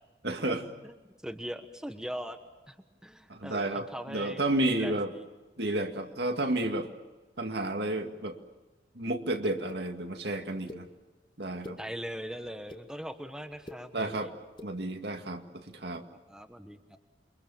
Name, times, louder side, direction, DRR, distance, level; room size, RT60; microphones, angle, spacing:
voice 1, 0.2-0.6 3.3-5.1 5.6-6.9 7.4-8.4 9.0-10.9 11.4-11.8 13.9-14.3 14.6-16.0, right 1 dB, 70° right, 5 dB, 2.2 m, -31 dB
voice 2, 1.2-2.4 2.7-2.8 3.0-5.3 11.8-14.3 16.3-17.0, equal, 5° right, 6 dB, 1.3 m, -40 dB
sound 1, 9.7-9.8 10.7-10.8 11.4-11.8 12.4-12.8 13.5-13.8 14.5-14.7, left 1 dB, 25° left, 1.6 m, -44 dB
28.5 x 24.0 x 7.2 m, 1.2 s
head